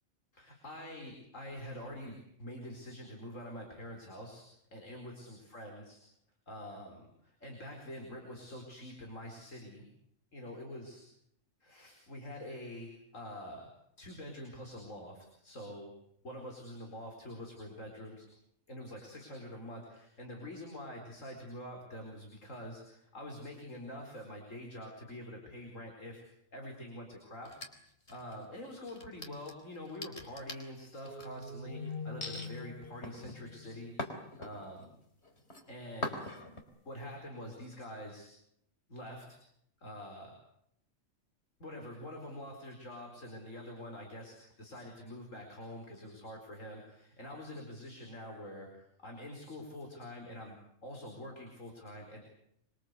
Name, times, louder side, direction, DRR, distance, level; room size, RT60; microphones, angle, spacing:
voice 1, 0.3-4.4 4.7-6.0 6.5-9.8 10.3-11.1 11.6-13.7 14.0-15.9 16.2-18.3 18.7-26.2 26.5-27.6 28.1-34.8 35.7-36.2 36.8-38.3 38.9-39.4 39.8-40.3 41.6-52.2, left 1 dB, 70° left, 1 dB, 4.8 m, -46 dB
sound 1, 27.4-28.4 28.9-31.5 32.2-32.5 33.0-34.8 35.2-35.6 36.0-36.6, left 1 dB, 55° left, 4.2 m, -42 dB
sound 2, 31.0-34.5, left 3 dB, 40° left, 2.2 m, -44 dB
25.5 x 24.5 x 8.2 m, 0.74 s
omnidirectional pair, 1.4 m